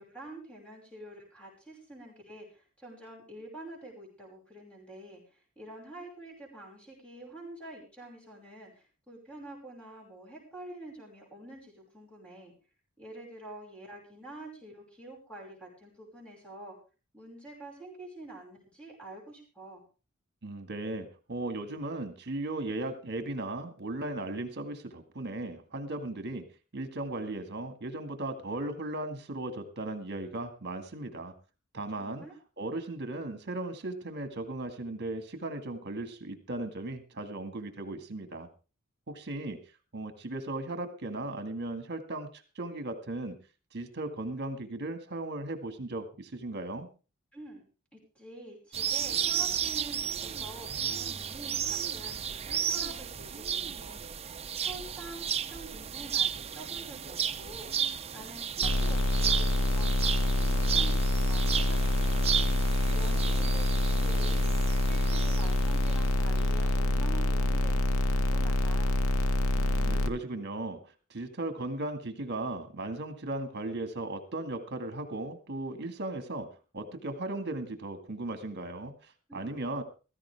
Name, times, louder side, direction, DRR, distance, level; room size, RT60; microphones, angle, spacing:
voice 1, 0.0-12.5 13.0-16.7 17.1-19.8 32.0-32.3 47.3-47.6 47.9-54.1 54.6-62.2 62.9-64.5 64.8-69.0 79.3-79.6, right 1 dB, 5° left, -1 dB, 5.5 m, -47 dB
voice 2, 20.4-26.4 26.7-31.3 31.7-32.2 32.6-38.5 39.1-39.6 39.9-43.4 43.7-46.9 69.5-70.8 71.1-76.5 76.7-79.8, right 2 dB, 50° right, 8 dB, 2.0 m, -37 dB
sound 1, 48.7-66.1, right 8 dB, 30° right, 0.6 m, -33 dB
sound 2, 58.6-70.1, left 1 dB, 85° left, 1.0 m, -26 dB
16.0 x 14.5 x 3.5 m, 0.33 s
head